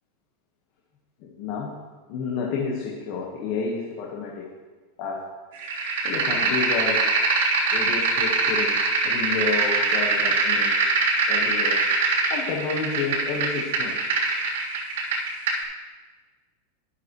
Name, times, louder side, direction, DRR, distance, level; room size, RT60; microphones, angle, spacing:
voice 1, 1.2-1.7 2.1-4.5 5.0-5.2 6.0-7.0 7.7-10.8 11.3-11.8 12.3-13.9, left 5 dB, 40° left, -2 dB, 1.5 m, -30 dB
sound 1, 5.6-15.6, right 3 dB, 80° right, 3.7 m, -23 dB
12.5 x 9.7 x 3.2 m, 1.4 s
supercardioid pair, 170°, 0 cm